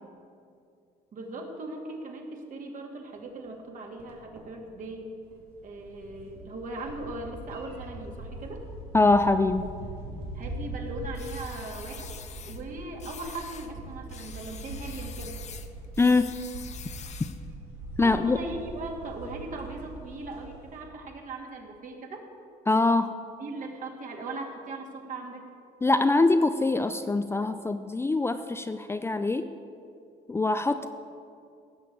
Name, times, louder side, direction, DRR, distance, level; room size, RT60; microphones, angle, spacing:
voice 1, 1.1-5.1 5.6-8.6 10.3-12.1 12.4-15.4 18.0-22.2 23.4-25.5, right 2 dB, 50° right, 1 dB, 2.6 m, -39 dB
sound 1, 3.2-3.3 4.0-4.1 4.3-4.4 4.7-20.8, right 2 dB, 80° right, 3.2 m, -41 dB
voice 2, 8.9-9.6 16.0-16.3 18.0-18.4 22.7-23.1 25.8-29.5 30.3-30.9, left 3 dB, 15° left, 9 dB, 0.5 m, -23 dB
sound 2, 11.1-12.6 13.0-13.7 14.1-17.5, left 8 dB, 40° left, 0.9 m, -45 dB
16.5 x 6.6 x 8.7 m, 2.4 s
cardioid pair, 110°, 17 cm